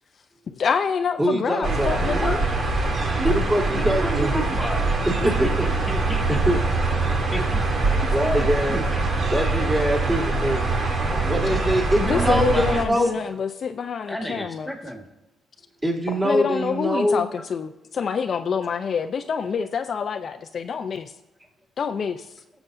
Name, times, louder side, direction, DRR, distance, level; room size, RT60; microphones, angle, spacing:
voice 1, 0.5-2.4 12.0-14.7 16.1-21.1 21.8-22.3, left 6 dB, 50° left, 0.5 m, -26 dB
voice 2, 1.2-2.0 3.2-4.4 5.0-5.5 6.3-6.6 8.1-8.8 9.3-10.6 11.3-13.1 15.8-17.2, equal, 20° right, 3.0 m, -23 dB
sound 1, 1.6-12.8, right 3 dB, 55° right, 1.7 m, -23 dB
voice 3, 2.0-2.4 3.2-3.4 3.7-6.2 7.1-7.6 7.9-9.0 10.8-11.5 12.0-12.8 14.1-15.0, equal, 5° left, 1.9 m, -32 dB
18.5 x 7.0 x 2.7 m
cardioid pair, 90°, 0 cm